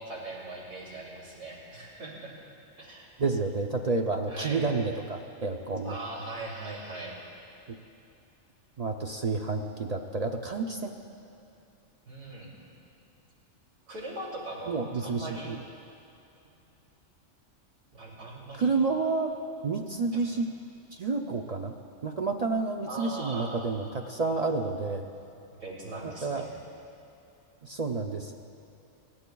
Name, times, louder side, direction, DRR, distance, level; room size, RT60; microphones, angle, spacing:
voice 1, 0.0-2.3 2.8-3.1 4.3-4.6 5.8-7.2 12.0-12.5 13.9-14.8 15.0-15.5 17.9-18.8 20.1-20.2 22.9-23.6 25.6-26.5, right 2 dB, 70° right, -5 dB, 3.2 m, -40 dB
voice 2, 3.2-6.0 7.7-7.8 8.8-10.9 14.7-15.6 18.6-19.3 19.6-20.5 20.9-21.7 22.0-25.1 26.0-26.5 27.6-28.3, right 3 dB, 50° right, 3 dB, 0.5 m, -30 dB
21.5 x 15.5 x 2.3 m, 2.8 s
omnidirectional pair, 1.3 m